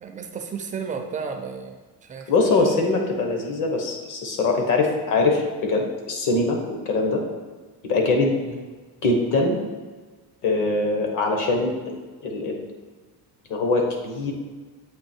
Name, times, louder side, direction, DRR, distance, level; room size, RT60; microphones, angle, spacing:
voice 1, 0.0-2.3 8.4-8.6, right 5 dB, 20° right, 4 dB, 0.4 m, -33 dB
voice 2, 2.3-7.2 7.8-8.3 9.0-9.6 10.4-11.7 12.2-12.6 13.5-14.3, left 3 dB, 55° left, 2 dB, 1.2 m, -22 dB
7.9 x 2.9 x 4.4 m, 1.4 s
cardioid pair, 160°, 37 cm